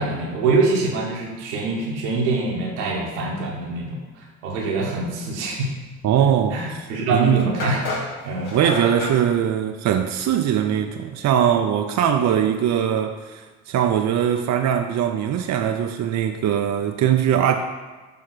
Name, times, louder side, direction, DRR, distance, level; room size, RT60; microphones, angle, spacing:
voice 1, 0.0-5.7 6.5-7.8 8.2-8.5, right 3 dB, 90° right, -2 dB, 1.3 m, -24 dB
voice 2, 6.0-6.6 7.1-7.5 8.5-17.5, right 9 dB, 55° right, 5 dB, 0.6 m, -21 dB
sound 1, 6.7-6.8 7.6-9.2, left 2 dB, 65° left, 1.9 m, -29 dB
6.8 x 3.4 x 6.1 m, 1.3 s
hypercardioid pair, 50°, 34 cm